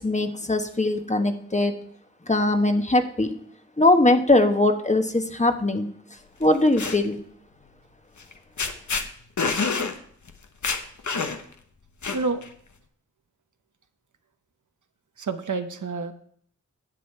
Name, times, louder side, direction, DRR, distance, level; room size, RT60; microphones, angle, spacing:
voice 1, 0.0-1.7 2.3-3.3 3.8-5.9 6.4-7.2, left 2 dB, 25° left, 6 dB, 1.2 m, -21 dB
sound 1, 6.4-7.0 8.2-8.3 8.6-9.0 9.4-9.9 10.3-10.4 10.6-11.5 12.0-12.5, left 4 dB, 70° left, 1.1 m, -27 dB
voice 2, 15.2-16.1, right 4 dB, 75° right, 7 dB, 1.0 m, -28 dB
10.0 x 7.8 x 4.5 m, 0.62 s
cardioid pair, 45°, 30 cm